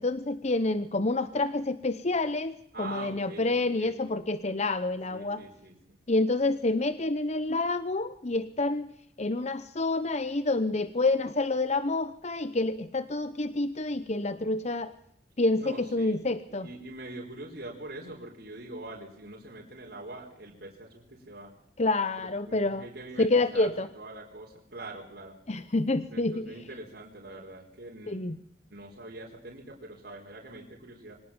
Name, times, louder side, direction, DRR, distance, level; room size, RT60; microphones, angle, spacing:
voice 1, 0.0-5.4 6.1-8.9 9.2-14.9 15.4-16.7 21.8-22.9 23.2-23.9 25.5-26.5 28.1-28.4, left 2 dB, 35° left, 12 dB, 0.9 m, -28 dB
voice 2, 2.7-4.0 5.1-6.0 15.6-16.3 16.6-21.5 22.2-25.4 26.1-28.3 28.7-31.2, right 2 dB, 55° right, -2 dB, 4.4 m, -44 dB
24.5 x 18.5 x 7.2 m, 0.69 s
head